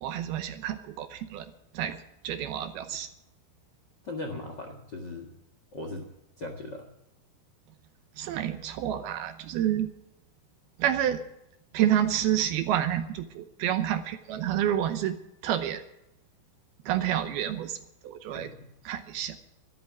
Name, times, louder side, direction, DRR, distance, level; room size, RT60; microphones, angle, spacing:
voice 1, 0.0-3.1 8.2-9.9 10.8-11.2 11.7-15.2 15.4-15.8 16.9-17.8 18.0-18.5 18.9-19.4, right 11 dB, 75° right, 9 dB, 2.5 m, -29 dB
voice 2, 4.0-5.3 5.7-6.1 6.4-6.9 18.3-18.6, left 2 dB, 55° left, 3 dB, 1.2 m, -38 dB
13.5 x 13.0 x 6.1 m, 0.86 s
omnidirectional pair, 5.0 m